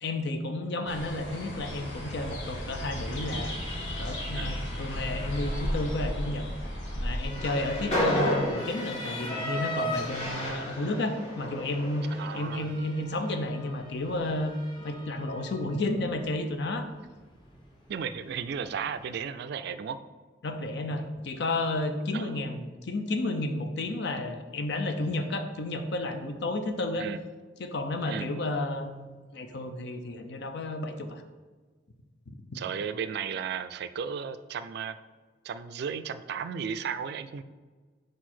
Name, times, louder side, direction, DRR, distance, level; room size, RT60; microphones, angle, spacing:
voice 1, 0.0-3.6 4.0-6.5 7.0-12.1 12.3-16.9 20.4-27.1 27.6-31.2 32.3-32.6, left 2 dB, 65° left, 7 dB, 0.6 m, -32 dB
sound 1, 0.9-8.5, equal, 85° left, 1.4 m, -35 dB
Motor vehicle (road) / Siren, 1.8-19.2, left 1 dB, 25° left, 1.0 m, -42 dB
Train, 7.3-12.6, equal, 40° left, 1.6 m, -32 dB
voice 2, 12.2-12.7 17.9-20.0 22.1-22.4 27.0-27.2 28.1-28.3 32.5-35.0 35.4-37.4, right 7 dB, 60° right, 12 dB, 0.3 m, -35 dB
4.8 x 4.6 x 4.3 m, 1.4 s
head